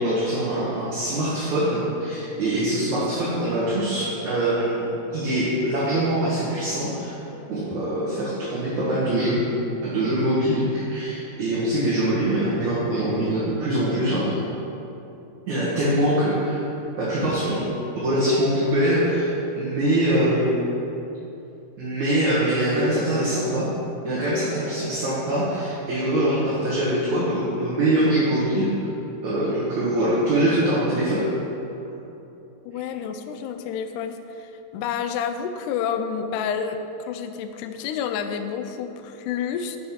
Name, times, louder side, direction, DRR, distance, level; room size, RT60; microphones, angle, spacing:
voice 1, 0.0-7.2 7.5-9.4 9.8-14.4 15.5-16.6 17.0-17.6 18.0-20.6 21.8-23.7 24.0-28.9 29.2-31.3, right 1 dB, 60° right, -9 dB, 2.5 m, -23 dB
voice 2, 32.7-39.8, left 7 dB, 85° left, 8 dB, 1.8 m, -29 dB
8.3 x 5.4 x 5.8 m, 2.9 s
omnidirectional pair, 4.1 m